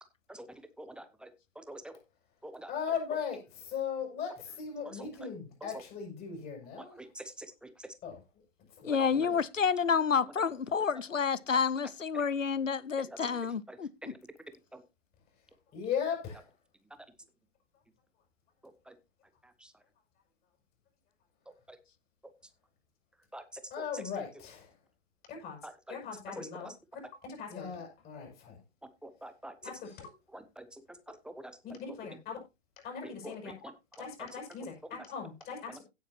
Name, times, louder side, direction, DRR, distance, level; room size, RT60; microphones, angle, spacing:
voice 1, 0.8-1.3 1.6-1.9 2.4-2.7 4.9-5.3 5.6-5.8 7.0-7.5 14.7-14.8 18.9-19.0 23.3-23.4 23.8-24.0 25.6-26.0 26.4-26.7 29.0-29.5 30.3-30.6 31.4-31.8 33.2-33.5 35.7-35.8, right 1 dB, 5° right, 0.5 m, -46 dB
voice 2, 2.7-7.0 8.0-8.2 8.8-9.2 15.7-16.4 23.7-24.7 25.3-25.6 25.9-26.7 27.2-28.6 29.6-30.1 31.8-32.4 32.8-33.5 34.0-35.6, left 7 dB, 25° left, 5.9 m, -38 dB
voice 3, 8.8-14.1, left 6 dB, 85° left, 0.8 m, -29 dB
16.5 x 7.5 x 2.8 m
figure-of-eight pair, 115°, 37 cm